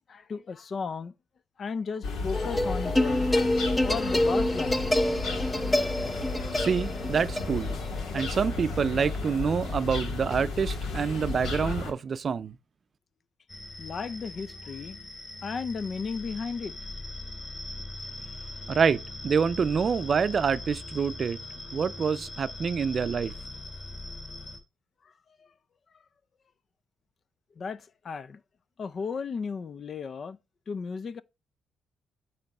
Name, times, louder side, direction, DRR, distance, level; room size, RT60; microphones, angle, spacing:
voice 1, 0.1-1.1 1.6-3.3 3.8-4.9 13.8-15.0 15.4-16.8 27.6-28.4 28.8-30.4 30.7-31.2, left 5 dB, 45° left, 0.5 m, -34 dB
sound 1, 2.0-11.9, left 3 dB, 80° left, 1.7 m, -33 dB
sound 2, 2.3-9.7, left 1 dB, 15° left, 0.8 m, -28 dB
voice 2, 6.6-7.8 8.1-12.6 18.7-21.4 21.7-23.3, right 6 dB, 45° right, 0.5 m, -27 dB
sound 3, 13.5-24.6, left 2 dB, 30° left, 3.5 m, -41 dB
9.1 x 3.2 x 5.9 m
cardioid pair, 90°, 0 cm